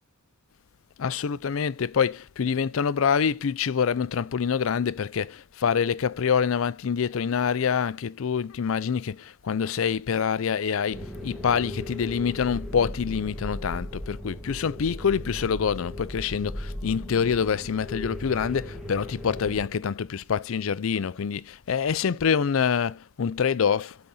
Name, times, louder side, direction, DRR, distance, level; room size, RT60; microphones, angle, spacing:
voice 1, 1.0-24.0, left 6 dB, 70° left, 0.4 m, -26 dB
sound 1, 10.9-19.6, left 1 dB, ahead, 1.8 m, -37 dB
8.7 x 4.0 x 7.0 m
head